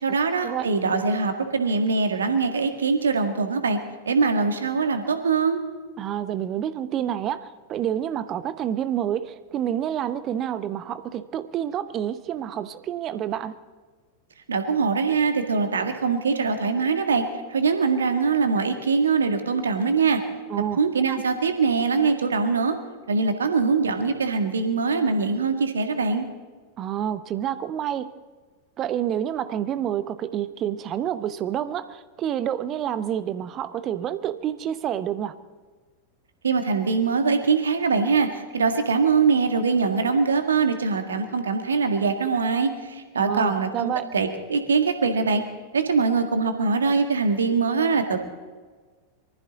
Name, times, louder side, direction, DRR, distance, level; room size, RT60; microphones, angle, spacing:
voice 1, 0.0-3.8 4.1-5.6 14.5-17.2 17.5-20.2 20.8-22.7 23.1-26.3 36.4-45.4 45.7-48.2, right 4 dB, 70° right, 7 dB, 1.8 m, -23 dB
voice 2, 6.0-13.5 20.5-20.8 21.1-21.2 26.8-28.1 28.8-35.4 43.2-44.1, right 10 dB, 30° right, 14 dB, 0.8 m, -28 dB
23.5 x 14.5 x 4.1 m, 1.4 s
figure-of-eight pair, 90°, 0 cm